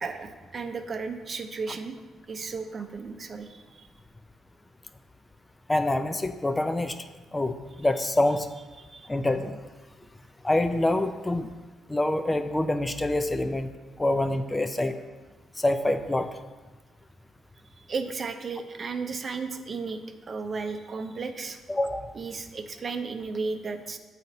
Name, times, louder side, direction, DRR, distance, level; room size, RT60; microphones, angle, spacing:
voice 1, 0.0-1.9 2.3-3.9 8.8-9.1 17.8-20.0 20.3-21.6 22.1-24.0, right 4 dB, 40° right, 6 dB, 0.6 m, -34 dB
voice 2, 5.7-6.9 7.3-8.5 9.1-9.6 10.4-11.5 11.9-13.7 14.0-14.9 15.6-16.3 21.7-22.1, left 1 dB, 15° left, 8 dB, 0.3 m, -26 dB
8.3 x 4.1 x 4.0 m, 1.3 s
cardioid pair, 85°, 0 cm